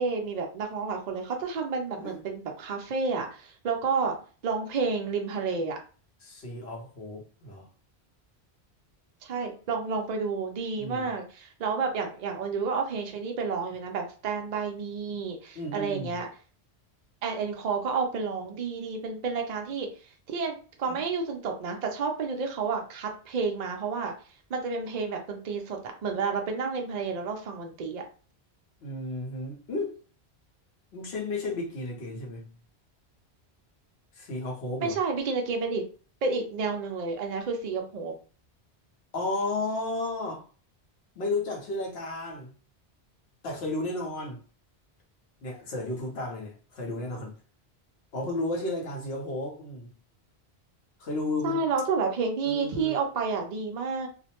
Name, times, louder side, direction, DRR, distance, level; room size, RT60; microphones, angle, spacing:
voice 1, 0.0-4.2 4.4-5.8 9.2-16.3 17.2-19.9 20.3-24.1 24.5-28.0 34.8-35.8 36.2-38.1 51.4-54.1, right 4 dB, 55° right, 0.5 m, -30 dB
voice 2, 6.2-7.7 10.8-11.1 15.5-16.2 20.9-21.0 28.8-30.0 30.9-32.5 34.1-35.0 39.1-40.4 41.1-42.5 43.4-44.4 45.4-47.4 48.1-49.9 51.0-51.7 52.4-53.0, left 2 dB, 75° left, 1.1 m, -33 dB
2.5 x 2.0 x 2.8 m
omnidirectional pair, 1.1 m